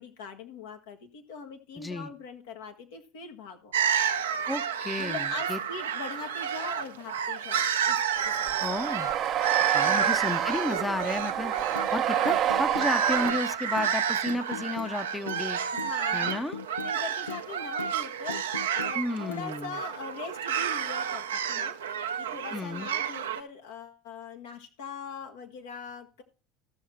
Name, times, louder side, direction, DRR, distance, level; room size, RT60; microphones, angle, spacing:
voice 1, 0.0-3.7 4.3-4.4 5.0-8.0 8.4-8.5 9.8-10.3 15.7-16.5 16.8-21.7 22.2-26.2, left 5 dB, 70° left, 4 dB, 1.5 m, -41 dB
voice 2, 1.8-2.1 4.5-5.6 8.6-9.1 9.7-15.6 16.1-16.6 19.0-19.8 22.5-22.9, left 2 dB, 10° left, 11 dB, 0.8 m, -32 dB
sound 1, 3.7-23.4, right 8 dB, 80° right, 0.7 m, -30 dB
sound 2, 8.2-13.3, right 10 dB, 45° right, 0.7 m, -28 dB
sound 3, 11.8-11.9 12.3-12.9 13.3-13.4 13.8-13.9 14.3-14.9 15.3-15.5 15.8-15.9 16.3-17.0 17.3-17.5 17.8-18.0 18.3-19.0 19.3-19.5, left 6 dB, 90° left, 0.4 m, -39 dB
14.0 x 6.4 x 4.3 m, 0.34 s
hypercardioid pair, 70°, 0 cm